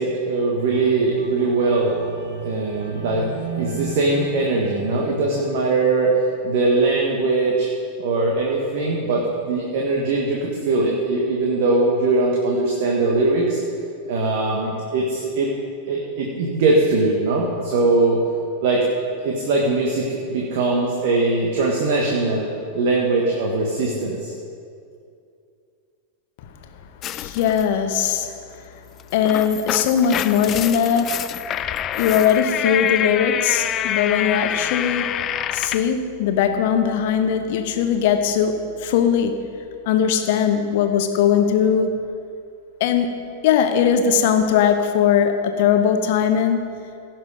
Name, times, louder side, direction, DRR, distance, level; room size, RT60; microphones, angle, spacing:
voice 1, 0.0-2.0 2.4-3.3 3.6-6.1 6.4-7.7 8.0-13.6 14.1-15.5 15.9-18.2 18.6-18.8 19.2-22.5 22.7-24.3, right 3 dB, 50° right, -1 dB, 1.5 m, -21 dB
sound 1, 0.5-5.8 6.3-6.5, right 5 dB, 70° right, 2.2 m, -34 dB
sound 2, 27.0-27.7 29.0-35.9, left 10 dB, 30° left, 0.3 m, -26 dB
voice 2, 27.1-28.3 29.1-31.3 32.0-35.2 35.5-39.4 39.9-42.0 42.8-46.6, left 8 dB, 50° left, 7 dB, 1.0 m, -20 dB
16.5 x 6.1 x 5.0 m, 2.4 s
figure-of-eight pair, 90°, 0 cm